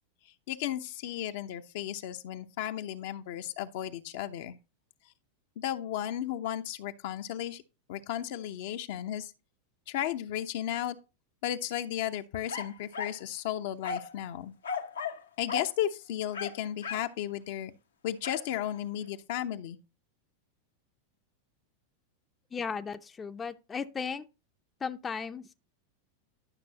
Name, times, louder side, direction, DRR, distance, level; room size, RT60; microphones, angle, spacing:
voice 1, 0.5-4.6 5.6-7.6 7.9-9.3 9.9-11.0 11.4-14.5 15.4-17.7 18.0-19.8, left 11 dB, 60° left, 0.7 m, -34 dB
sound 1, 12.5-13.2 13.8-14.2 14.6-15.2 15.5-15.7 16.3-17.1 18.2-18.5, left 6 dB, 85° left, 1.0 m, -36 dB
voice 2, 22.5-24.2 24.8-25.4, left 6 dB, 20° left, 0.6 m, -35 dB
11.5 x 6.0 x 2.8 m
hypercardioid pair, 95°, 0 cm